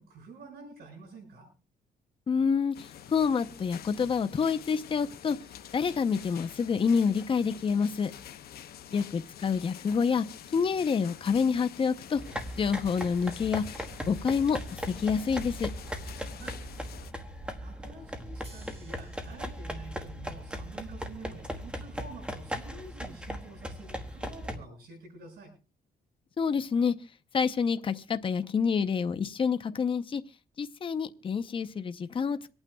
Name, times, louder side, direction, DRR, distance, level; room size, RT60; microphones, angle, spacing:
voice 1, 0.0-1.5 8.9-9.1 16.4-16.8 17.6-25.5, right 3 dB, 70° right, 0 dB, 6.9 m, -48 dB
voice 2, 2.3-5.4 5.7-8.1 8.9-10.2 10.5-12.2 12.6-13.8 14.1-14.6 14.9-15.7 26.4-26.9 27.3-30.2 30.6-32.5, left 6 dB, 35° left, 9 dB, 0.7 m, -27 dB
sound 1, 2.7-17.1, left 10 dB, 70° left, 0.9 m, -47 dB
sound 2, 12.2-24.6, equal, 5° right, 1.3 m, -38 dB
sound 3, 18.4-24.5, right 2 dB, 40° right, 5.7 m, -61 dB
26.0 x 8.9 x 2.3 m, 0.36 s
cardioid pair, 120°, 16 cm